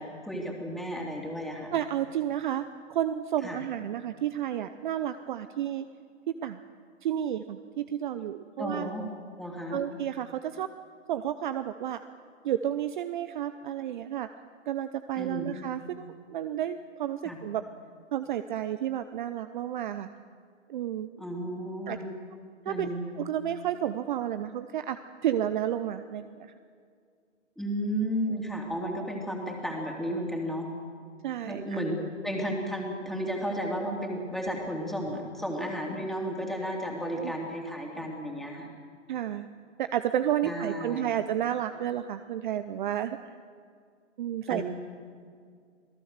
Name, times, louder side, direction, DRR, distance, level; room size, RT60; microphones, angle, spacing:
voice 1, 0.0-1.7 3.4-3.6 8.6-9.1 9.4-9.8 15.1-15.6 17.2-17.4 21.2-22.1 22.7-23.1 27.6-30.7 31.4-38.7 40.4-41.1 44.5-44.6, equal, ahead, 0 dB, 3.0 m, -33 dB
voice 2, 1.7-5.8 6.4-6.6 7.0-8.9 9.7-10.7 11.1-12.0 12.4-14.3 14.7-17.6 18.1-20.1 20.7-21.1 21.9-22.0 22.6-22.9 23.2-25.0 25.2-26.5 31.2-31.8 37.2-37.3 39.1-39.5 39.8-43.2 44.2-44.6, right 11 dB, 40° right, 11 dB, 0.8 m, -31 dB
27.0 x 17.5 x 6.6 m, 2.1 s
figure-of-eight pair, 125°, 38 cm